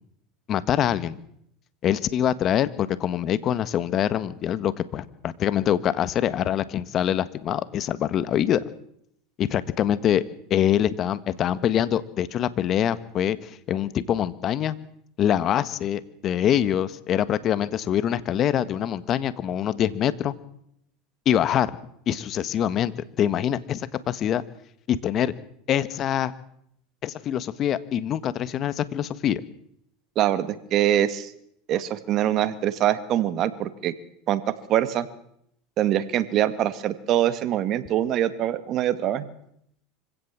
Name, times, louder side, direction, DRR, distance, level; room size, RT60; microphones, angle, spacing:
voice 1, 0.5-1.2 1.8-8.6 9.4-10.2 10.5-14.7 15.2-20.3 21.2-21.8 22.1-22.9 23.2-24.4 24.9-25.3 25.7-26.3 27.0-29.4, left 10 dB, 45° left, 15 dB, 1.5 m, -24 dB
voice 2, 30.2-31.3 31.7-33.9 34.3-35.1 35.8-39.3, right 11 dB, 50° right, 13 dB, 1.9 m, -24 dB
25.5 x 16.5 x 7.5 m, 0.72 s
supercardioid pair, 100°, 0 cm